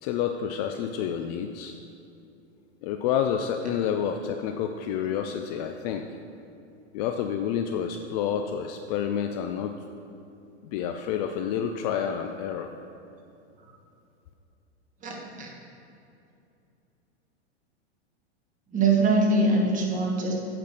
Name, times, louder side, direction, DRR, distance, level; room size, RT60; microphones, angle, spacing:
voice 1, 0.0-1.8 2.8-6.1 6.9-9.7 10.7-12.7, left 8 dB, 35° left, 6 dB, 0.4 m, -29 dB
voice 2, 15.0-15.5 18.7-20.3, right 3 dB, 20° right, -1 dB, 1.6 m, -23 dB
8.1 x 5.3 x 6.7 m, 2.7 s
hypercardioid pair, 130°, 34 cm